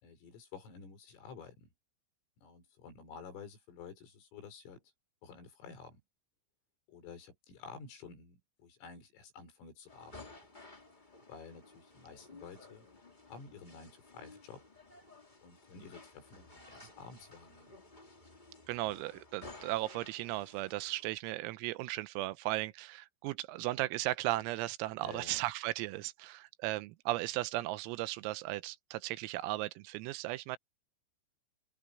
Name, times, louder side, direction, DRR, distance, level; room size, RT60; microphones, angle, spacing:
voice 1, 0.0-1.7 2.4-4.8 5.2-6.0 6.9-10.3 11.3-12.9 13.2-14.6 15.4-17.7 18.8-19.0 25.0-25.4, left 5 dB, 75° left, 7.9 m, -51 dB
sound 1, 9.9-21.1, left 2 dB, 45° left, 0.6 m, -55 dB
voice 2, 18.7-30.6, right 18 dB, 85° right, 3.5 m, -36 dB
open air
omnidirectional pair, 6.0 m